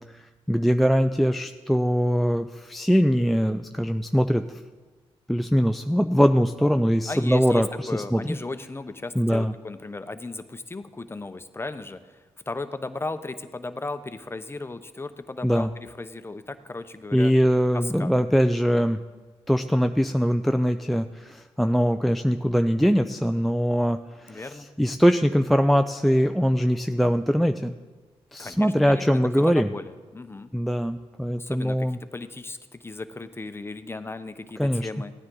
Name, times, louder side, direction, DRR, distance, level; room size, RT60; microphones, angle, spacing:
voice 1, 0.1-4.4 5.3-7.7 7.9-8.2 9.2-9.5 15.4-15.7 17.1-19.0 19.5-24.4 24.8-27.8 28.3-29.7 30.5-32.0 34.6-34.9, equal, ahead, 7 dB, 0.4 m, -22 dB
voice 2, 7.1-17.3 17.7-18.1 24.3-24.7 28.4-29.1 29.4-30.5 31.4-35.1, left 3 dB, 20° left, 10 dB, 0.8 m, -36 dB
15.5 x 9.5 x 3.9 m, 1.3 s
cardioid pair, 65°, 11 cm